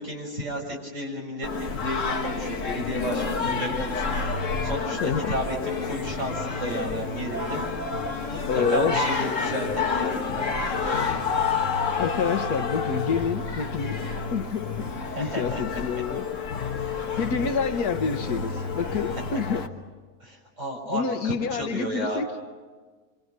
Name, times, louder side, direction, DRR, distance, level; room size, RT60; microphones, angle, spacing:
voice 1, 0.0-1.5 1.8-4.1 4.6-7.6 8.2-10.5 15.2-15.6 20.2-22.2, right 1 dB, 50° right, 7.2 m, -32 dB
Singing, 1.4-19.7, left 5 dB, 55° left, 1.9 m, -29 dB
voice 2, 5.0-5.3 8.5-9.0 12.0-14.0 14.3-14.9 15.2-16.3 17.2-19.7 20.9-22.3, left 6 dB, 85° left, 1.6 m, -28 dB
27.0 x 26.0 x 6.7 m
omnidirectional pair, 1.6 m